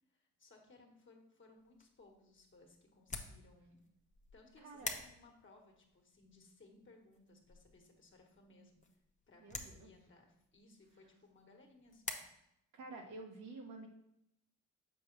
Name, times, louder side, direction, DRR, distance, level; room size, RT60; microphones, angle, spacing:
voice 1, 0.1-3.8 4.3-8.8 9.3-12.2, left 2 dB, 40° left, 1 dB, 1.3 m, -63 dB
sound 1, 1.6-12.1, left 3 dB, 25° left, 0.7 m, -50 dB
voice 2, 4.6-4.9 9.4-9.9 12.7-13.9, right 3 dB, 85° right, 1 dB, 1.2 m, -50 dB
6.9 x 4.8 x 3.2 m, 0.80 s
cardioid pair, 90°, 30 cm